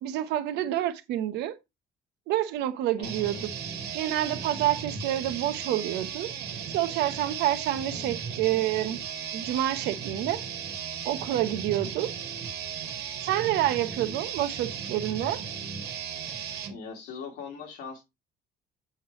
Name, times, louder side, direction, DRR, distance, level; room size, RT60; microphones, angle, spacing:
voice 1, 0.0-1.5 2.3-3.4 3.9-6.3 6.7-9.0 9.3-10.4 11.0-12.1 13.2-15.4, right 13 dB, 85° right, 0.9 m, -28 dB
voice 2, 3.0-3.4 7.9-8.1 16.7-18.0, left 5 dB, 80° left, 2.5 m, -41 dB
sound 1, 3.0-16.7, right 7 dB, 70° right, 1.8 m, -36 dB
8.0 x 3.1 x 4.9 m
cardioid pair, 110°, 17 cm